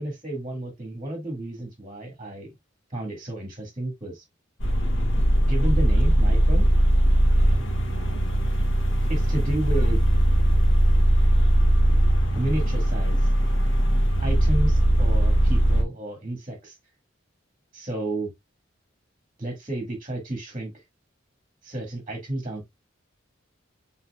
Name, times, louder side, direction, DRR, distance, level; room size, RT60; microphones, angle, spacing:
voice 1, 0.0-2.5 2.9-4.2 5.5-6.6 7.9-8.3 9.1-10.0 11.6-11.9 12.3-13.3 14.2-16.8 17.7-18.3 19.4-20.8 21.6-22.7, right 1 dB, 25° right, 2.0 m, -32 dB
sound 1, 4.6-15.8, right 1 dB, 70° left, 1.7 m, -20 dB
5.8 x 3.8 x 2.3 m
head